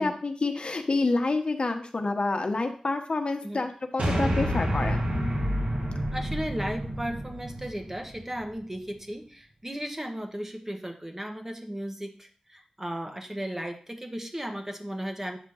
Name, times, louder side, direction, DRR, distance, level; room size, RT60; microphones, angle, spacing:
voice 1, 0.0-5.0, left 3 dB, 50° left, 5 dB, 1.1 m, -28 dB
sound 1, 4.0-8.4, equal, 70° right, 2.0 m, -29 dB
voice 2, 6.1-15.4, equal, 20° right, 5 dB, 1.1 m, -35 dB
8.8 x 3.6 x 6.4 m, 0.43 s
wide cardioid pair, 85°, 2 cm